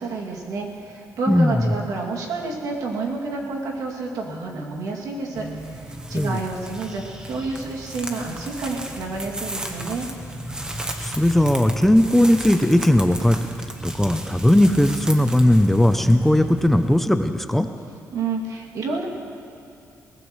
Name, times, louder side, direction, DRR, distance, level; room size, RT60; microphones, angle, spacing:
voice 1, 0.0-10.1 18.1-19.1, right 3 dB, 85° right, -2 dB, 2.5 m, -29 dB
voice 2, 1.3-1.7 6.1-6.4 11.0-13.4 13.8-17.7, left 1 dB, 5° left, 8 dB, 0.5 m, -18 dB
sound 1, 5.3-17.0, right 1 dB, 15° right, 1.1 m, -33 dB
22.5 x 19.5 x 3.2 m, 2.6 s
wide cardioid pair, 160°, 6 cm